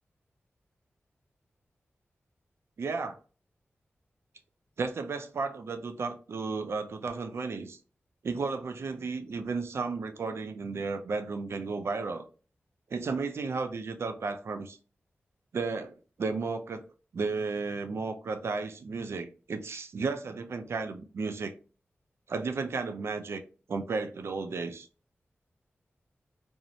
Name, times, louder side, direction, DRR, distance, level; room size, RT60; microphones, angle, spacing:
voice 1, 2.8-3.2 4.8-7.8 8.2-12.2 12.9-14.8 15.5-16.8 17.1-21.5 22.3-23.4 23.7-24.9, right 4 dB, 70° right, 0.4 m, -33 dB
2.6 x 2.0 x 2.7 m
wide cardioid pair, 75°, 5 cm